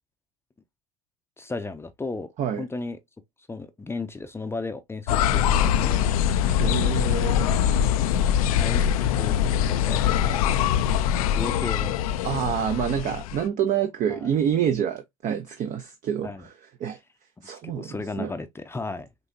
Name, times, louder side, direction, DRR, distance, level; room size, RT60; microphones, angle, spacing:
voice 1, 1.4-2.3 2.6-3.0 3.5-6.0 8.6-8.8 9.1-9.4 9.6-10.5 11.2-12.0 13.7-13.8 14.1-14.3 16.2-16.4 17.6-19.1, left 3 dB, 15° left, 0.6 m, -34 dB
sound 1, 5.1-13.5, left 9 dB, 80° left, 0.5 m, -23 dB
voice 2, 6.4-7.6 12.2-16.5 16.8-17.0 17.4-18.3, right 9 dB, 45° right, 0.7 m, -27 dB
5.5 x 2.8 x 2.7 m
hypercardioid pair, 85°, 18 cm